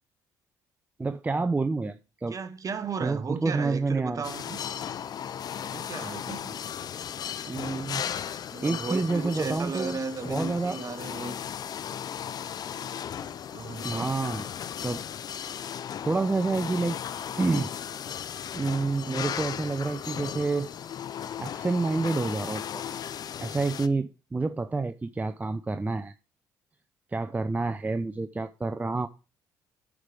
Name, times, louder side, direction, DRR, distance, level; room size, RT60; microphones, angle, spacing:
voice 1, 1.0-2.4 3.0-4.2 7.5-8.0 8.6-10.0 10.3-10.8 13.8-14.5 14.8-15.0 16.0-17.0 17.4-17.7 18.5-20.7 21.4-22.8 23.4-26.1 27.1-29.1, right 3 dB, 20° right, 0.6 m, -28 dB
voice 2, 2.3-4.6 5.7-6.6 8.5-11.4 13.5-14.2, right 5 dB, 45° right, 1.2 m, -35 dB
sound 1, 4.2-23.9, left 9 dB, 50° left, 0.5 m, -36 dB
9.7 x 4.9 x 4.8 m
hypercardioid pair, 60°, 8 cm